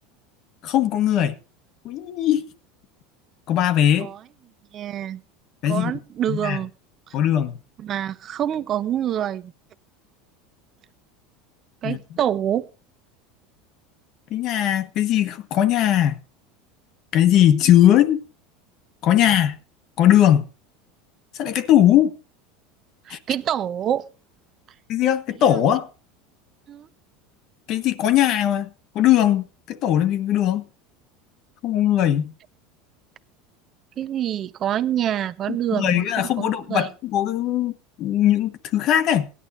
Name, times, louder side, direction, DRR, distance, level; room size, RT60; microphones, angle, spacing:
voice 1, 0.6-1.4 1.8-2.5 3.5-4.1 5.6-5.9 6.3-6.6 7.1-7.6 11.8-12.0 14.3-16.2 17.1-18.2 19.0-19.6 20.0-20.5 21.4-22.1 23.1-23.2 24.9-25.9 27.7-28.7 28.9-30.6 31.6-32.3 35.8-37.7 38.0-39.2, left 11 dB, 40° left, 1.2 m, -19 dB
voice 2, 4.7-5.2 5.7-6.7 7.1-7.2 7.8-9.5 11.8-12.7 23.1-24.0 26.7-26.9 34.0-36.1 36.4-36.9, right 10 dB, 30° right, 0.8 m, -26 dB
18.5 x 11.0 x 2.6 m
supercardioid pair, 170°, 0 cm